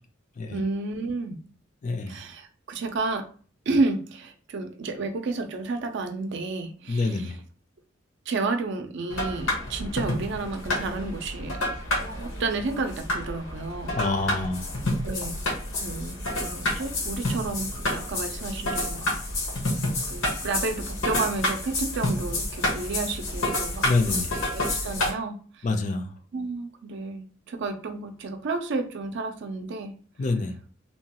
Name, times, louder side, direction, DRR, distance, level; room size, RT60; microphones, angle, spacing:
voice 1, 0.5-1.4 2.1-3.3 3.7-7.4 8.3-11.6 12.1-14.0 14.3-14.4 15.0-15.4 15.8-19.1 20.0-25.7 26.3-29.9, right 3 dB, 65° right, 6 dB, 0.4 m, -31 dB
voice 2, 1.8-2.2 6.9-7.3 13.9-14.7 23.8-24.3 25.6-26.1 30.2-30.5, left 3 dB, 40° left, 5 dB, 0.4 m, -26 dB
sound 1, 9.1-25.1, left 1 dB, 80° left, 1.0 m, -29 dB
2.8 x 2.2 x 2.8 m, 0.41 s
head